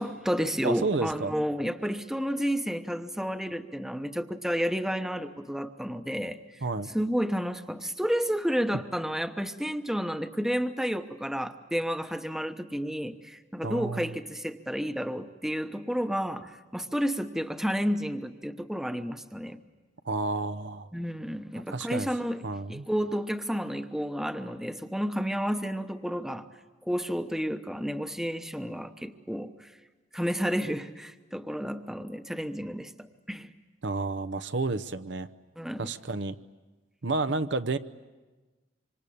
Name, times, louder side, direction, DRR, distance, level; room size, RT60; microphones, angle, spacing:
voice 1, 0.0-6.4 6.9-19.6 20.9-22.4 22.7-26.5 26.9-29.7 30.1-33.5 35.6-35.9, equal, ahead, 8 dB, 1.0 m, -31 dB
voice 2, 0.6-1.3 6.6-6.9 13.6-14.1 20.1-20.9 21.7-22.1 22.4-22.9 33.8-35.3 35.8-36.3 37.0-37.8, right 3 dB, 70° right, 11 dB, 0.8 m, -30 dB
26.0 x 26.0 x 8.6 m, 1.2 s
head